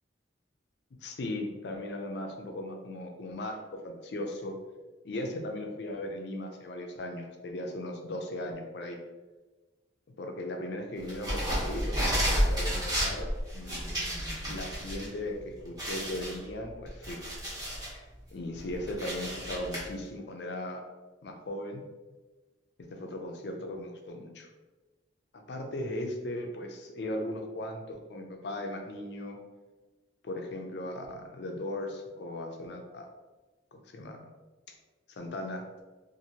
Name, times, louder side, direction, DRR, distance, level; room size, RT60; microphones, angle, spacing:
voice 1, 1.0-4.6 5.0-9.0 10.2-13.8 14.5-17.2 18.3-20.8 21.2-21.8 22.9-24.5 25.5-29.4 30.2-33.1 33.9-34.3 34.7-34.8 35.1-35.6, left 1 dB, 60° left, 3 dB, 0.4 m, -37 dB
sound 1, 11.1-15.0 15.4-15.5 15.8-18.0 18.4-19.8, equal, 20° right, 0.9 m, -31 dB
2.8 x 2.5 x 2.8 m, 1.2 s
head